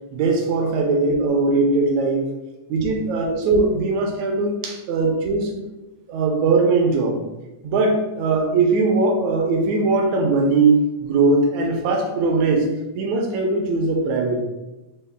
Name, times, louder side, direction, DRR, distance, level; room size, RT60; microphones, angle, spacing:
voice 1, 0.1-2.3 2.7-5.6 6.1-7.2 7.6-12.7 13.0-14.4, right 3 dB, 80° right, 1 dB, 1.8 m, -20 dB
5.4 x 2.3 x 3.3 m, 1.0 s
omnidirectional pair, 3.5 m